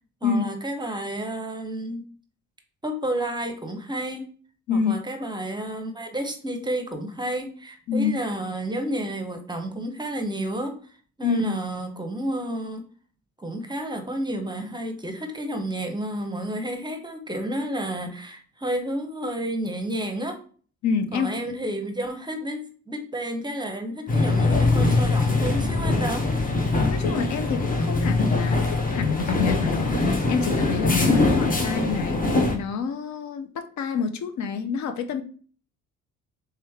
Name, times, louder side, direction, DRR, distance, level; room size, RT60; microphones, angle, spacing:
voice 1, 0.2-2.0 2.8-4.3 4.7-10.8 11.2-12.9 13.4-20.4 21.1-26.3, right 1 dB, 15° right, 6 dB, 0.7 m, -31 dB
voice 2, 7.9-8.2 11.2-11.6 20.8-21.6 26.8-32.2 32.5-35.2, left 6 dB, 70° left, 8 dB, 0.6 m, -27 dB
sound 1, 24.1-32.6, left 2 dB, 30° left, 0.7 m, -22 dB
3.4 x 3.0 x 3.5 m, 0.44 s
cardioid pair, 90°, 30 cm